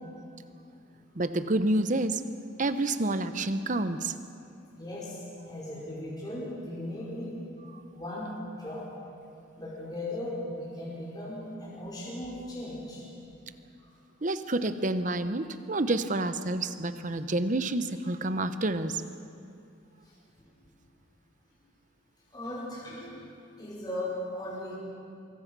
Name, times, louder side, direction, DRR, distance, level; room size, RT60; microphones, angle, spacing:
voice 1, 1.1-2.2 2.6-4.1 7.7-7.8 14.2-19.0, right 2 dB, 40° right, 11 dB, 0.9 m, -28 dB
voice 2, 4.7-5.2 5.5-7.3 7.9-8.9 9.6-13.0 20.4-20.5 22.3-24.7, left 1 dB, 20° left, -7 dB, 5.3 m, -37 dB
24.5 x 24.0 x 6.1 m, 2.5 s
head